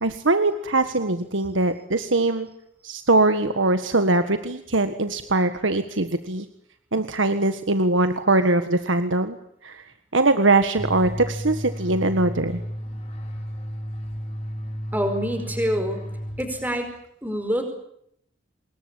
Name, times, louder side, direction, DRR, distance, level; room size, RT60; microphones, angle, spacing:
voice 1, 0.0-2.5 2.8-6.5 6.9-9.4 9.6-9.8 10.1-12.6, right 2 dB, 85° right, 9 dB, 1.6 m, -22 dB
sound 1, 10.8-16.9, equal, 30° left, 5.7 m, -33 dB
voice 2, 14.9-16.0 16.4-16.9 17.2-17.6, equal, 10° right, 7 dB, 5.0 m, -26 dB
26.5 x 21.5 x 8.9 m, 0.72 s
head